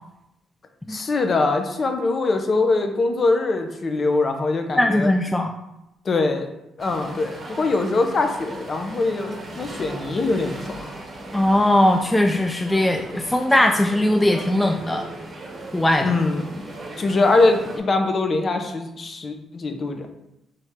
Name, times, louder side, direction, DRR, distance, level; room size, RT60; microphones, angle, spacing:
voice 1, 0.9-5.1 6.0-6.5 6.8-11.0 16.0-16.6 17.0-20.1, left 3 dB, 40° left, 5 dB, 0.7 m, -22 dB
voice 2, 4.8-5.5 11.3-15.1 15.7-16.1, left 1 dB, 10° left, 4 dB, 0.3 m, -19 dB
sound 1, 6.8-17.8, right 2 dB, 40° right, 1.1 m, -37 dB
4.2 x 3.4 x 3.6 m, 0.86 s
cardioid pair, 90°, 0 cm